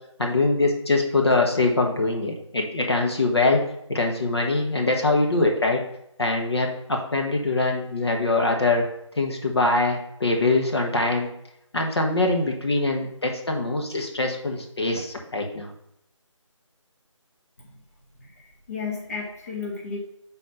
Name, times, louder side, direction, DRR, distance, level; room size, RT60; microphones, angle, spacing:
voice 1, 0.2-3.6 3.9-5.8 6.2-8.8 9.2-11.3 11.7-15.7, left 2 dB, 55° left, 1 dB, 1.2 m, -23 dB
voice 2, 18.2-20.0, left 5 dB, 30° left, -3 dB, 1.1 m, -33 dB
5.3 x 4.2 x 5.7 m, 0.79 s
figure-of-eight pair, 165°, 16 cm